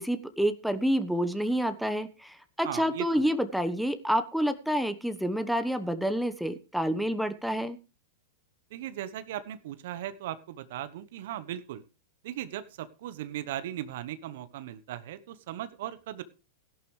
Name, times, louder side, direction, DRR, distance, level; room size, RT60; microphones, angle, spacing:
voice 1, 0.0-7.8, equal, ahead, 10 dB, 1.2 m, -28 dB
voice 2, 2.6-3.1 8.7-11.8 12.2-16.2, right 12 dB, 60° right, 12 dB, 1.1 m, -38 dB
17.0 x 11.5 x 3.3 m, 0.32 s
figure-of-eight pair, 100°, 0 cm